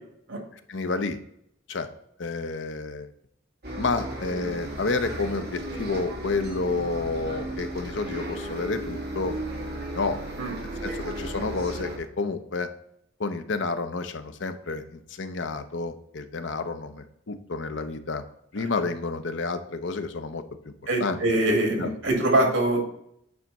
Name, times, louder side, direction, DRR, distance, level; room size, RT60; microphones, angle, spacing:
voice 1, 0.7-1.2 1.7-1.9 2.2-3.1 3.8-9.4 9.9-10.2 10.8-12.7 13.2-18.2 18.5-20.4 21.0-21.2 21.8-21.9, left 3 dB, 65° left, 8 dB, 0.6 m, -30 dB
Bus, 3.6-12.0, right 1 dB, 55° right, 1.7 m, -35 dB
voice 2, 20.9-22.8, right 1 dB, 80° right, 1 dB, 2.1 m, -23 dB
8.8 x 3.4 x 4.0 m, 0.73 s
head